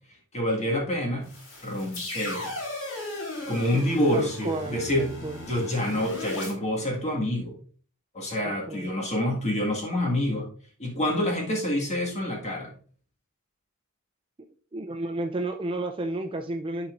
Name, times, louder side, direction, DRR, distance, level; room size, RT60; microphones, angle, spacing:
voice 1, 0.3-1.3 1.6-2.5 3.5-5.1 5.5-7.6 8.1-10.5 10.8-12.7, left 1 dB, 30° left, 0 dB, 1.8 m, -27 dB
sound 1, 1.2-6.5, left 1 dB, 90° left, 3.5 m, -36 dB
voice 2, 4.1-5.4 8.4-8.9 14.7-16.9, right 2 dB, 25° right, 5 dB, 0.4 m, -32 dB
11.0 x 4.2 x 2.5 m, 0.42 s
head